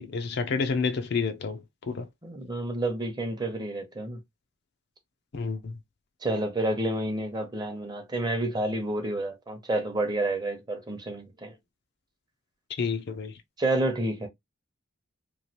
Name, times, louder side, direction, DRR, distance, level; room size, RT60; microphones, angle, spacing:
voice 1, 0.0-1.6 1.9-2.1 5.3-5.8 12.8-13.3, left 5 dB, 55° left, 0.5 m, -29 dB
voice 2, 2.2-4.2 6.2-11.5 13.6-14.3, right 1 dB, 20° right, 0.7 m, -29 dB
3.1 x 2.4 x 2.7 m
head